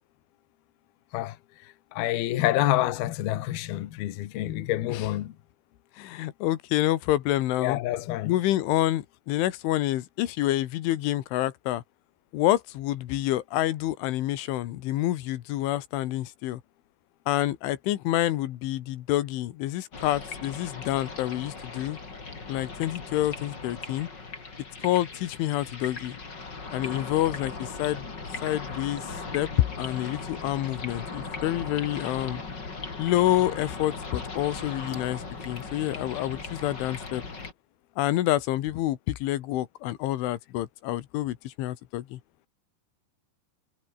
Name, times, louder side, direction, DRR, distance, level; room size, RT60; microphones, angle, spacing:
voice 1, 1.9-5.3 7.6-8.3, left 15 dB, 65° left, 3.0 m, -27 dB
voice 2, 6.0-7.8 8.3-11.8 12.3-16.6 17.3-22.0 22.5-24.1 24.8-26.2 26.7-28.1 28.4-29.5 29.8-32.4 33.0-37.2 38.0-42.2, left 14 dB, 85° left, 3.9 m, -28 dB
sound 1, 19.9-37.5, left 4 dB, 25° left, 3.7 m, -38 dB
omnidirectional pair, 5.4 m